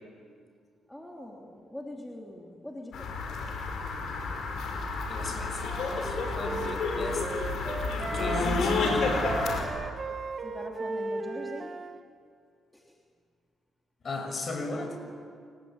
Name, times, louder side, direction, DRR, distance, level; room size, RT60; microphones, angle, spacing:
voice 1, 0.9-3.5 10.4-11.7 12.7-12.8, left 1 dB, 5° left, -1 dB, 3.3 m, -43 dB
sound 1, 2.9-9.6, left 3 dB, 70° left, 5.7 m, -30 dB
voice 2, 5.1-7.3 8.0-9.2 14.0-15.0, left 2 dB, 45° left, 4 dB, 6.6 m, -37 dB
Wind instrument woodwind instrument, 5.6-8.6 8.8-12.0, right 4 dB, 40° right, 1.8 m, -36 dB
29.5 x 19.5 x 9.0 m, 2.1 s
cardioid pair, 90°, 0 cm